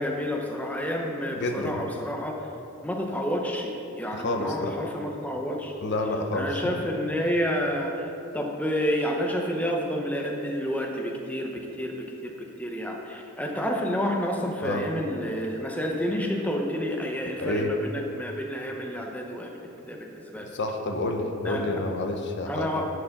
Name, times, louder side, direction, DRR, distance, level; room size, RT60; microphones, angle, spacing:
voice 1, 0.0-2.4 2.8-5.7 6.3-20.5 21.4-21.8 22.5-22.9, equal, 5° left, 1 dB, 0.8 m, -30 dB
voice 2, 1.4-1.8 4.1-4.8 5.8-6.6 14.6-14.9 17.4-17.7 20.5-22.9, left 2 dB, 55° left, 3 dB, 0.8 m, -29 dB
10.5 x 4.9 x 6.5 m, 2.8 s
head